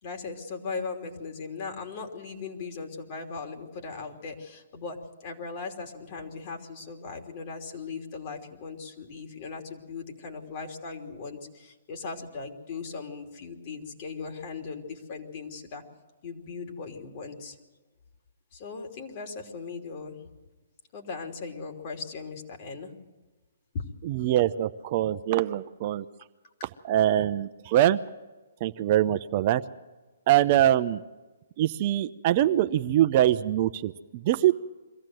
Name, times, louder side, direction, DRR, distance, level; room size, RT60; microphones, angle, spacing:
voice 1, 0.0-15.8 16.2-17.6 18.5-20.2 20.9-22.9 23.7-23.8, left 4 dB, 45° left, 2 dB, 3.2 m, -38 dB
voice 2, 24.0-26.0 26.9-28.0 28.6-29.6 30.3-31.0 31.6-34.5, right 12 dB, 40° right, 11 dB, 0.7 m, -23 dB
23.0 x 15.0 x 7.8 m, 1.2 s
hypercardioid pair, 140°, 0 cm